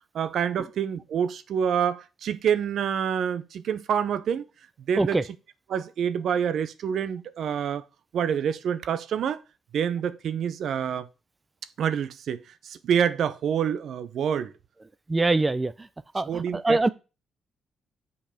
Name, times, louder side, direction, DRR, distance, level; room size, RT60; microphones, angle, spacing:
voice 1, 0.1-4.5 4.9-5.2 5.7-7.8 8.1-9.4 9.7-11.1 11.8-14.5 16.3-16.9, right 8 dB, 65° right, 0.7 m, -27 dB
voice 2, 15.1-15.9 16.1-16.9, right 2 dB, 20° right, 0.4 m, -23 dB
6.9 x 5.3 x 5.5 m
cardioid pair, 110°, 0 cm